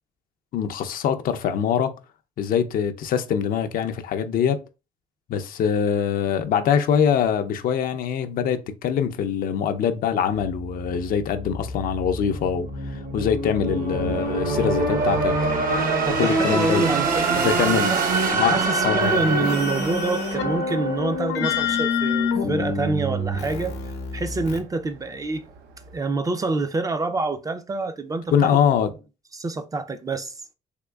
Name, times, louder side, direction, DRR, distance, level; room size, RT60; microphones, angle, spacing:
voice 1, 0.5-1.9 2.4-4.6 5.3-15.4 16.2-16.9 17.3-17.9 18.3-19.2 28.3-28.9, left 8 dB, 55° left, 0.5 m, -23 dB
sound 1, 10.4-21.4, right 3 dB, 55° right, 0.8 m, -25 dB
voice 2, 16.0-18.0 18.5-23.8 24.1-25.4 25.9-28.5 29.3-30.3, right 3 dB, 20° right, 0.4 m, -27 dB
Race car auto racing, 16.9-26.0, right 6 dB, 80° right, 0.6 m, -38 dB
sound 2, 19.0-24.6, left 4 dB, 90° left, 0.7 m, -27 dB
3.5 x 3.0 x 2.3 m
cardioid pair, 110°, 17 cm